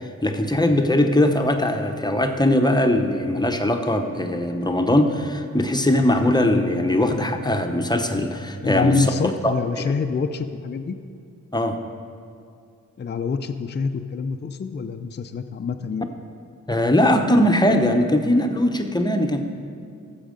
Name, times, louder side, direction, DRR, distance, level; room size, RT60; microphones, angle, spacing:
voice 1, 0.2-9.1 9.4-9.9 11.5-11.8 16.7-19.4, left 1 dB, 15° left, 5 dB, 0.9 m, -20 dB
voice 2, 8.6-11.0 13.0-16.1, left 5 dB, 35° left, 6 dB, 0.5 m, -26 dB
14.5 x 7.1 x 5.1 m, 2.3 s
cardioid pair, 80°, 31 cm